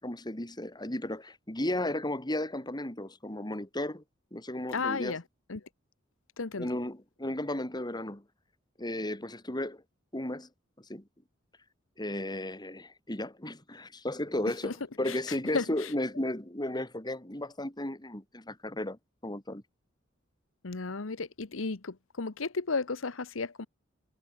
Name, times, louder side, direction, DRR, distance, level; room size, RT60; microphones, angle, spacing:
voice 1, 0.0-4.0 4.3-5.2 6.5-8.2 8.8-9.8 10.1-10.5 10.8-11.0 12.0-19.6, left 1 dB, 20° left, 3.5 m, -34 dB
voice 2, 4.7-5.2 5.5-5.6 6.4-6.7 14.6-14.7 15.1-15.2 15.5-15.9 20.6-23.7, left 4 dB, 85° left, 1.1 m, -33 dB
head